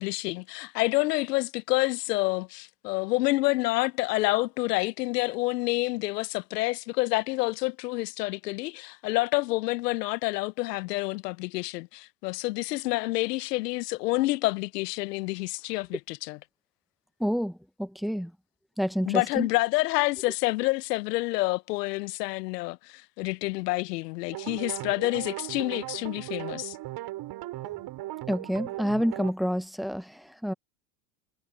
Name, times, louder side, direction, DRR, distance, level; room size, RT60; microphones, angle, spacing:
voice 1, 0.0-16.4 19.1-26.8, left 21 dB, 85° left, 0.8 m, -28 dB
voice 2, 17.2-18.3 18.8-19.5 28.3-30.5, equal, ahead, 1.2 m, -28 dB
sound 1, 24.3-29.3, right 16 dB, 55° right, 6.2 m, -37 dB
supercardioid pair, 100°, 47 cm